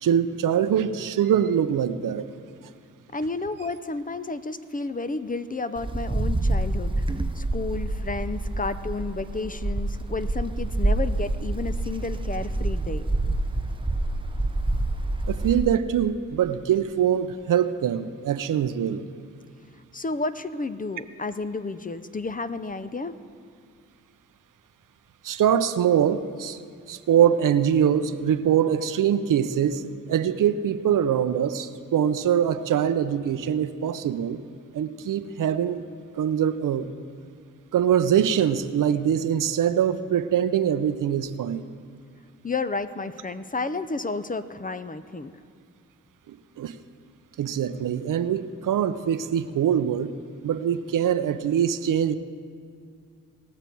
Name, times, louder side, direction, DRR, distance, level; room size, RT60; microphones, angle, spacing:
voice 1, 0.0-2.3 15.3-19.0 25.2-26.6 26.9-29.8 30.1-34.4 34.7-35.8 36.1-36.9 37.7-41.7 46.3-46.7 47.4-50.1 50.4-52.2, right 9 dB, 65° right, 12 dB, 0.6 m, -23 dB
voice 2, 3.1-7.0 7.4-13.0 19.9-23.1 42.4-45.3, left 3 dB, 25° left, 12 dB, 0.6 m, -31 dB
Wind, 5.8-15.8, right 2 dB, 15° right, 0.7 m, -27 dB
19.5 x 6.8 x 4.6 m, 2.2 s
supercardioid pair, 45°, 34 cm